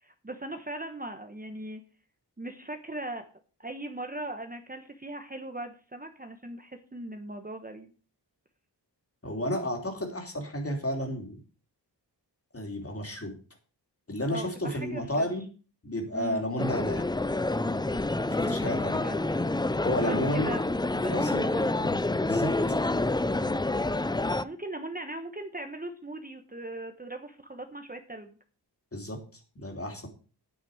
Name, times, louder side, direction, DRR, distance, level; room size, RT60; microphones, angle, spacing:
voice 1, 0.0-1.8 2.4-3.3 3.6-7.9 14.3-15.3 16.1-16.5 18.2-19.6 20.0-20.6 21.0-21.6 24.4-28.3, right 1 dB, 20° right, 6 dB, 1.2 m, -39 dB
voice 2, 9.2-11.4 12.5-13.3 14.1-15.4 15.8-17.1 18.3-19.0 19.8-20.5 21.1-22.6 28.9-29.2 29.5-30.1, equal, 35° left, 3 dB, 3.1 m, -32 dB
sound 1, 16.6-24.4, left 2 dB, 10° left, 0.5 m, -28 dB
9.4 x 9.1 x 5.0 m, 0.37 s
wide cardioid pair, 90°, 42 cm